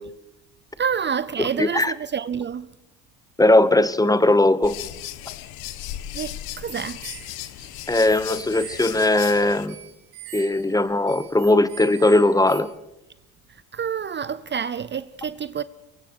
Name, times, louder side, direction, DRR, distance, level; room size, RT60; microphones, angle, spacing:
voice 1, 0.8-2.7 6.1-7.0 13.5-15.6, right 7 dB, 30° right, 0.6 m, -28 dB
voice 2, 1.4-1.9 3.4-4.8 7.9-9.7 10.3-12.7, left 2 dB, 10° left, 0.9 m, -19 dB
sound 1, 4.6-9.7, left 13 dB, 75° left, 1.4 m, -36 dB
sound 2, 7.0-12.6, right 15 dB, 85° right, 2.9 m, -43 dB
23.5 x 23.0 x 4.8 m
supercardioid pair, 90°, 37 cm